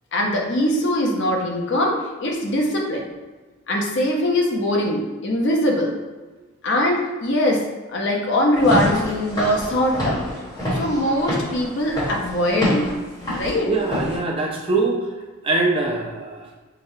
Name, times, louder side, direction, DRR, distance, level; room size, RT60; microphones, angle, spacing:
voice 1, 0.1-3.1 3.7-6.0 6.6-7.6 7.9-10.3 10.7-12.9 13.3-13.7, left 1 dB, 55° left, 0 dB, 0.6 m, -21 dB
Walk footsteps / Siren, 8.5-14.1, equal, 20° left, 1.2 m, -27 dB
voice 2, 13.7-15.1 15.4-16.5, right 3 dB, 25° right, 0 dB, 0.4 m, -23 dB
4.7 x 2.2 x 2.7 m, 1.3 s
head